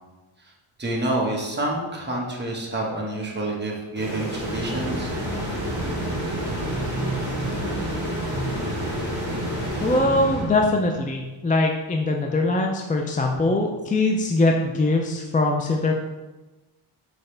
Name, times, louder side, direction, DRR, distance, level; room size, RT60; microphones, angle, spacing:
voice 1, 0.8-5.1, right 1 dB, 20° right, -3 dB, 1.3 m, -28 dB
sound 1, 4.0-10.6, left 1 dB, 35° left, 1.9 m, -32 dB
sound 2, 4.4-11.1, right 2 dB, 65° right, 1.5 m, -30 dB
voice 2, 9.8-16.0, left 2 dB, 20° left, 2 dB, 0.4 m, -22 dB
6.6 x 4.6 x 3.3 m, 1.1 s
wide cardioid pair, 130°, 50 cm